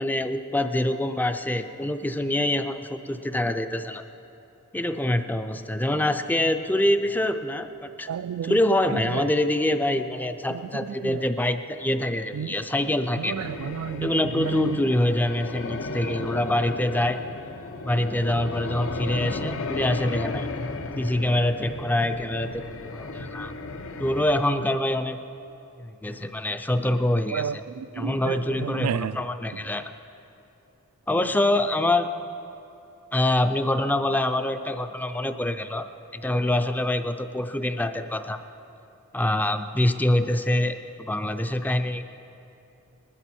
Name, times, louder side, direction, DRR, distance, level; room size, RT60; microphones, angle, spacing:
voice 1, 0.0-4.0 4.7-8.1 8.4-13.4 14.0-17.2 17.8-20.5 21.0-23.5 24.0-25.2 25.8-27.6 27.9-29.9 31.1-32.1 33.1-35.9 36.1-38.4 39.1-42.0, left 1 dB, 10° left, 9 dB, 0.4 m, -25 dB
voice 2, 8.1-8.5 8.9-9.2 10.5-10.6 11.0-11.2 12.3-12.5 13.2-14.8 27.3-29.1, right 8 dB, 85° right, 16 dB, 0.3 m, -31 dB
sound 1, 13.3-24.4, left 3 dB, 65° left, 0.8 m, -34 dB
20.0 x 12.5 x 4.4 m, 2.8 s
head